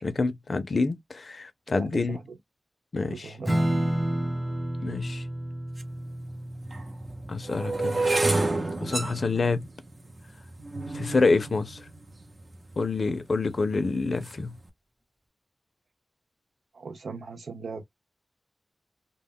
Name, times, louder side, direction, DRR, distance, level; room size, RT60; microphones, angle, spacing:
voice 1, 0.0-2.2 2.9-3.3 4.8-5.2 7.3-8.0 8.8-9.7 10.9-11.8 12.8-14.6, left 3 dB, 65° left, 0.5 m, -27 dB
voice 2, 1.7-2.4 3.0-3.6 16.7-17.8, right 4 dB, 90° right, 0.3 m, -39 dB
Strum, 3.4-10.3, right 1 dB, 10° right, 0.9 m, -32 dB
sound 1, 5.8-5.9 6.6-12.8 13.4-13.8 14.1-14.5, right 2 dB, 50° right, 0.6 m, -30 dB
2.2 x 2.0 x 3.5 m
wide cardioid pair, 65°, 0 cm